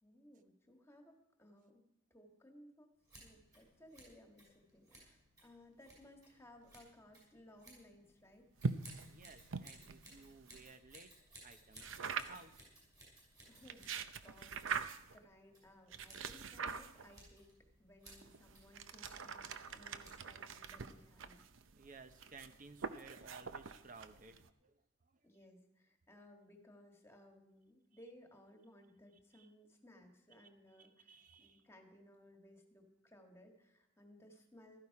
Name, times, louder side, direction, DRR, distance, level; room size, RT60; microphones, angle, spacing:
voice 1, 0.0-1.8 2.1-2.9 3.2-8.5 13.5-13.9 14.2-17.5 17.8-21.4 25.2-34.8, left 1 dB, 15° left, 3 dB, 1.7 m, -61 dB
Scissors, 3.0-20.5, right 1 dB, 20° right, 5.9 m, -62 dB
sound 1, 8.6-10.8 11.8-12.6 13.5-15.2 15.9-17.3 18.1-24.5, right 5 dB, 75° right, 0.7 m, -44 dB
voice 2, 9.1-11.1 11.4-12.5 21.7-25.3 29.3-29.5 30.4-30.5 30.8-31.7, right 4 dB, 40° right, 9 dB, 0.9 m, -58 dB
15.5 x 13.0 x 4.8 m, 0.82 s
head